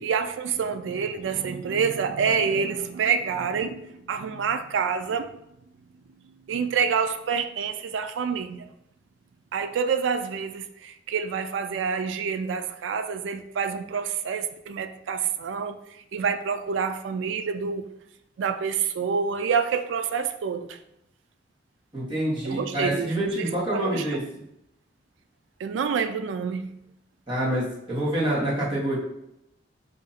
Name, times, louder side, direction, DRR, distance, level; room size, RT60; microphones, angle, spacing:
voice 1, 0.0-5.3 6.5-8.7 9.5-15.8 16.1-17.8 18.4-20.8 22.4-24.0 25.6-26.7, right 6 dB, 90° right, 0.3 m, -27 dB
voice 2, 21.9-24.2 27.3-29.0, right 1 dB, 30° right, 1.3 m, -26 dB
2.8 x 2.6 x 4.0 m
head